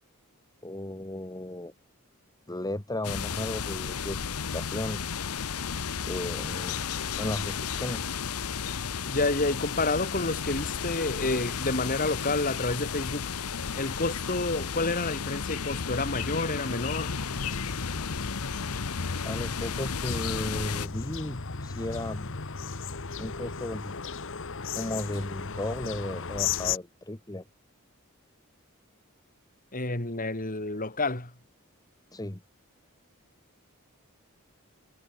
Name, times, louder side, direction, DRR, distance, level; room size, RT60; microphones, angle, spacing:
voice 1, 0.6-1.7 2.5-5.0 6.1-6.8 7.2-8.1 19.2-22.3 23.2-23.9 24.7-27.4 32.1-32.4, left 1 dB, 15° left, 1.3 m, -35 dB
sound 1, 3.0-20.9, left 6 dB, 85° left, 0.9 m, -33 dB
voice 2, 9.0-13.3 13.7-17.2 29.7-31.3, left 2 dB, 40° left, 3.8 m, -29 dB
sound 2, 16.9-26.8, left 5 dB, 60° left, 1.4 m, -36 dB
head